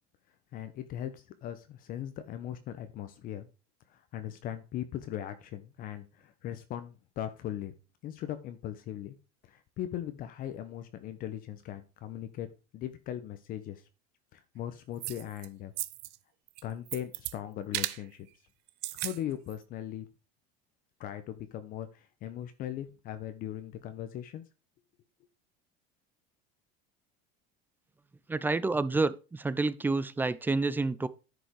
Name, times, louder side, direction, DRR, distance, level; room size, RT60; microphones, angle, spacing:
voice 1, 0.5-3.5 3.9-7.7 8.0-9.1 9.4-12.5 12.7-13.8 14.3-15.7 16.6-18.3 18.9-20.1 21.0-24.4, left 11 dB, 45° left, 0.9 m, -39 dB
sound 1, 15.0-15.5 15.8-16.2 16.5-17.3 17.7-18.0 18.7-19.2 19.5-19.6, right 19 dB, 60° right, 0.6 m, -35 dB
voice 2, 28.3-31.1, right 3 dB, 10° right, 0.4 m, -29 dB
10.0 x 5.2 x 4.6 m
supercardioid pair, 130°, 19 cm